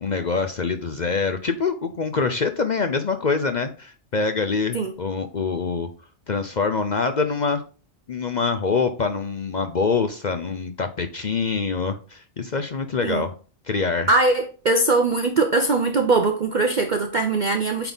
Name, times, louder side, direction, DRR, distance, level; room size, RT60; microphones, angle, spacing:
voice 1, 0.0-5.9 6.3-7.6 8.1-13.3 13.7-14.1, left 4 dB, 50° left, 0.5 m, -25 dB
voice 2, 14.1-17.9, right 3 dB, 45° right, 0.7 m, -21 dB
8.9 x 3.6 x 3.9 m
omnidirectional pair, 1.4 m